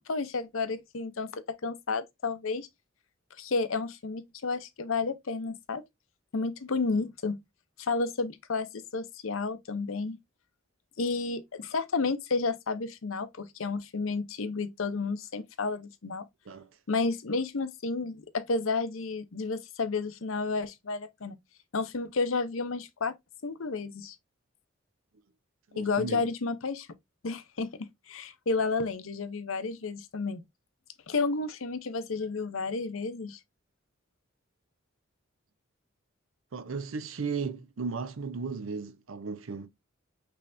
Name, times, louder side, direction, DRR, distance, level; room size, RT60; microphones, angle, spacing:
voice 1, 0.1-2.7 3.4-5.8 6.3-7.4 7.8-10.2 11.0-16.3 16.9-21.4 21.7-23.1 23.4-24.2 25.7-26.9 27.2-27.7 28.1-30.4 31.1-33.4, left 4 dB, 75° left, 0.7 m, -31 dB
voice 2, 25.7-26.3 36.5-39.7, right 5 dB, 75° right, 0.6 m, -35 dB
5.5 x 3.3 x 2.5 m
head